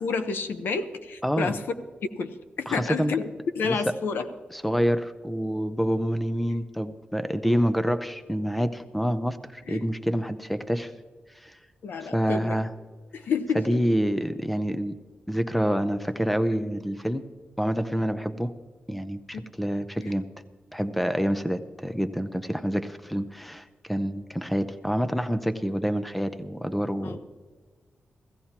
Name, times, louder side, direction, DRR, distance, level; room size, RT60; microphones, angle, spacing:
voice 1, 0.0-1.6 2.1-3.3 3.5-4.3 7.4-7.6 9.7-9.8 11.8-12.6 13.1-13.8 19.3-19.5 20.0-20.1 27.0-27.2, left 5 dB, 85° left, 9 dB, 0.8 m, -30 dB
voice 2, 1.2-1.6 2.7-3.2 3.6-3.8 4.5-10.9 11.4-11.6 12.0-12.7 13.5-15.0 15.3-17.2 17.6-18.5 18.9-20.3 20.7-27.2, equal, ahead, 11 dB, 0.6 m, -27 dB
16.0 x 15.5 x 2.9 m, 1.4 s
wide cardioid pair, 120°, 3 cm